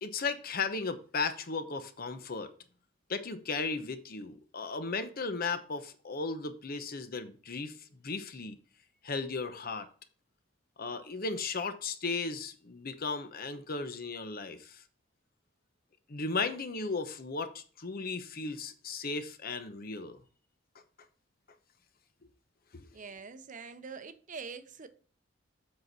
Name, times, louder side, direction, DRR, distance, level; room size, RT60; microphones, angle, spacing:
voice 1, 0.0-2.5 3.1-7.8 8.0-8.6 9.0-9.9 10.8-14.8 16.1-20.2 22.7-22.9, left 4 dB, 50° left, 0.9 m, -35 dB
voice 2, 22.9-24.9, right 5 dB, 45° right, 0.7 m, -44 dB
7.6 x 6.1 x 4.1 m
head